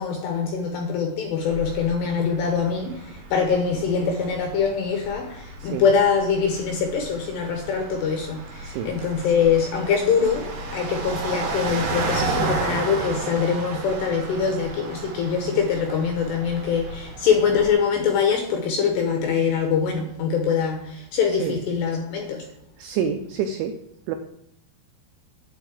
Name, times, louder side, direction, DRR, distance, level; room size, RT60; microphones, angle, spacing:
voice 1, 0.0-22.5, left 6 dB, 75° left, 2.6 m, -23 dB
sound 1, 1.4-17.7, right 3 dB, 55° right, 2.7 m, -33 dB
voice 2, 8.6-9.0 21.2-21.6 22.8-23.7 24.1-24.2, right 7 dB, 90° right, 2.6 m, -28 dB
9.0 x 4.7 x 7.3 m
omnidirectional pair, 6.0 m